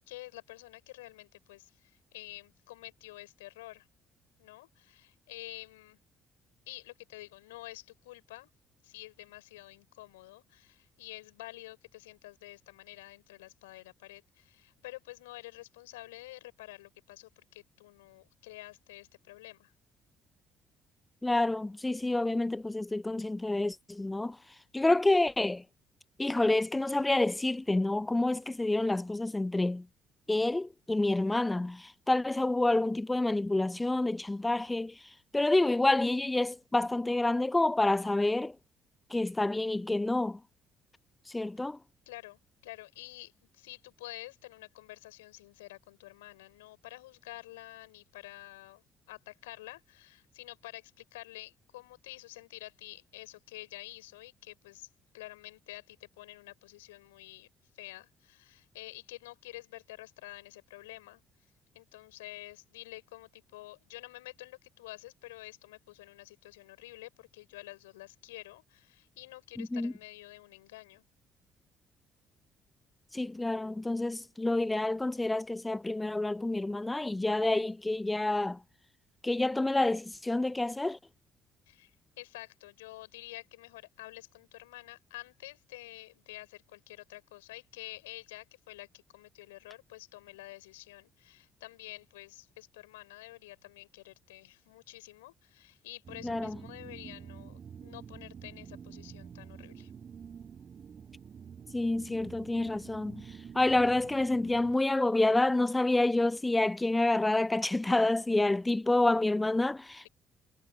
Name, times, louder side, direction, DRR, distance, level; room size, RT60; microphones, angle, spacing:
voice 1, 0.0-3.9 4.4-6.0 6.7-8.5 8.8-19.7 37.8-38.4 42.0-54.9 55.1-57.5 57.7-61.2 61.7-71.0 81.7-99.9, left 19 dB, 75° left, 6.6 m, -49 dB
voice 2, 21.2-24.4 24.7-25.6 26.2-29.9 30.3-35.0 35.3-38.5 39.1-40.4 41.3-41.8 69.6-69.9 73.1-78.6 79.2-81.0 96.2-96.6 101.7-103.2 103.5-110.1, left 2 dB, 15° left, 0.9 m, -28 dB
sound 1, 96.0-104.8, right 7 dB, 45° right, 6.2 m, -48 dB
figure-of-eight pair, 45°, 0 cm